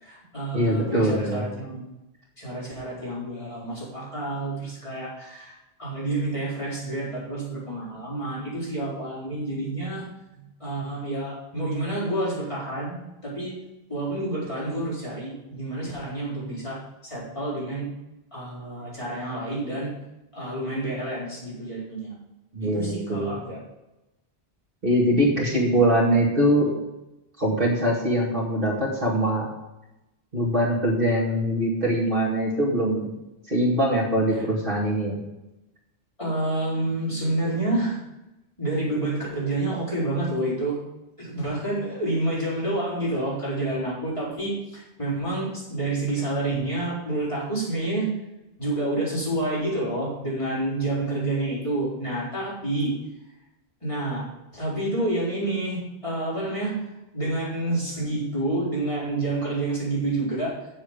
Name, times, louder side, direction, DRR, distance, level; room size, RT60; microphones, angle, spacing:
voice 1, 0.0-1.8 2.4-10.1 10.3-13.0 13.2-13.6 13.9-17.9 18.3-19.9 20.3-22.2 22.6-23.6 34.3-34.5 36.2-38.0 38.6-40.8 41.2-48.1 48.6-52.9 53.8-54.2 54.5-56.9 57.1-60.7, right 2 dB, 30° left, -8 dB, 4.2 m, -29 dB
voice 2, 0.5-1.4 22.5-23.3 24.8-26.7 27.4-29.5 30.3-33.1 33.5-35.2, equal, 50° right, -4 dB, 2.4 m, -22 dB
9.0 x 7.6 x 5.0 m, 0.97 s
omnidirectional pair, 1.1 m